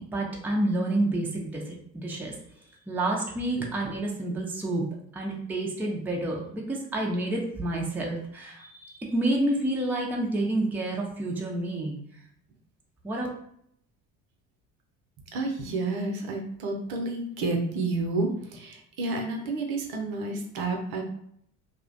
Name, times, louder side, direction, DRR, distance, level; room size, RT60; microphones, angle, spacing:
voice 1, 0.0-2.3 2.9-12.0 13.0-13.3, right 1 dB, 5° right, -2 dB, 0.5 m, -29 dB
voice 2, 15.3-21.0, right 3 dB, 60° right, 2 dB, 0.7 m, -30 dB
2.4 x 2.1 x 2.5 m, 0.68 s
hypercardioid pair, 55°, 43 cm